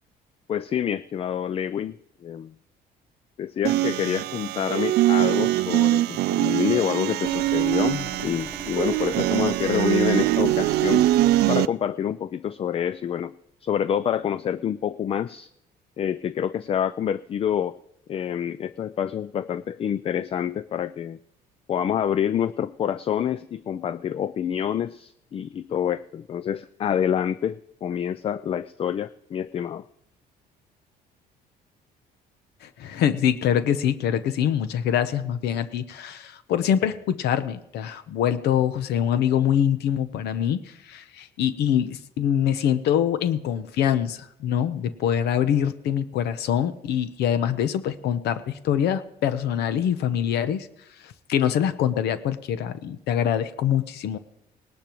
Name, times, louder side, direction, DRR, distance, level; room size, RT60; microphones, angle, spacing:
voice 1, 0.5-2.5 3.4-11.0 11.5-13.3 13.6-15.5 16.0-17.8 18.1-21.2 21.7-29.8, left 9 dB, 35° left, 16 dB, 0.4 m, -27 dB
sound 1, 3.7-11.7, right 15 dB, 70° right, 0.4 m, -22 dB
sound 2, 7.3-11.5, right 2 dB, 10° right, 0.8 m, -40 dB
voice 2, 32.6-50.7 51.0-54.2, left 9 dB, 75° left, 12 dB, 0.8 m, -24 dB
19.5 x 12.0 x 3.1 m, 0.77 s
cardioid pair, 110°, 17 cm